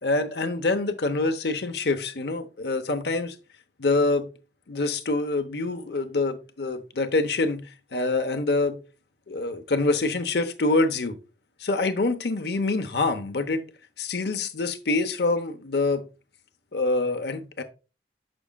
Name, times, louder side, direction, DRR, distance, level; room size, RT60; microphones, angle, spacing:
voice 1, 0.0-3.3 3.8-4.3 4.7-7.6 7.9-8.8 9.3-11.2 11.6-13.6 14.0-16.0 16.7-17.6, left 3 dB, 65° left, 0.8 m, -25 dB
7.2 x 6.2 x 2.2 m
head